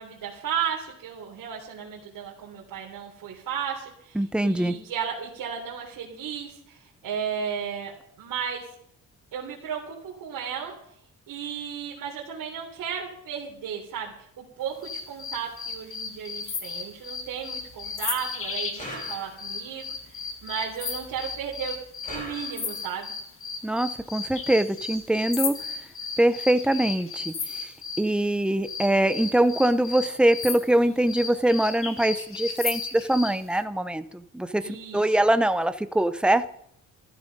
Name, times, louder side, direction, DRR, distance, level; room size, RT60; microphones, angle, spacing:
voice 1, 0.0-8.6 9.3-10.7 11.3-21.8 22.1-23.1 34.6-35.2, right 8 dB, 75° right, -3 dB, 3.6 m, -34 dB
voice 2, 4.2-4.7 23.6-25.6 26.2-27.3 28.0-34.0 34.3-34.6 34.9-36.4, right 1 dB, 5° right, 12 dB, 0.7 m, -23 dB
sound 1, 14.8-28.1 28.6-33.4, left 5 dB, 40° left, 2.0 m, -35 dB
sound 2, 18.7-19.7 22.0-23.0, equal, 25° left, 6.7 m, -40 dB
14.0 x 13.5 x 5.4 m, 0.69 s
cardioid pair, 140°, 33 cm